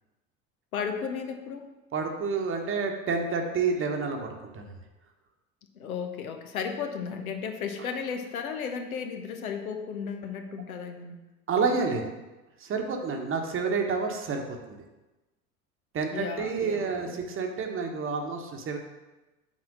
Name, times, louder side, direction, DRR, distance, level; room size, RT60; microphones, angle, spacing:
voice 1, 0.7-1.7 5.7-11.2 16.1-17.2, left 6 dB, 70° left, 5 dB, 1.0 m, -34 dB
voice 2, 1.9-4.3 4.5-4.7 11.5-12.0 12.6-14.8 15.9-18.8, right 5 dB, 30° right, 3 dB, 1.2 m, -29 dB
8.5 x 4.2 x 6.2 m, 1.1 s
figure-of-eight pair, 75°, 44 cm